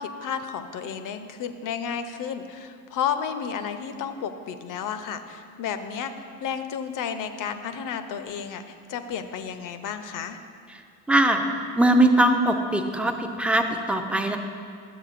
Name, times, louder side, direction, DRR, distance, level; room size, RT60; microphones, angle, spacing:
voice 1, 0.0-10.4, left 7 dB, 45° left, 9 dB, 0.6 m, -32 dB
voice 2, 11.1-11.4 11.8-14.4, right 1 dB, 5° right, 4 dB, 0.5 m, -21 dB
11.0 x 7.3 x 2.5 m, 2.3 s
hypercardioid pair, 75°, 44 cm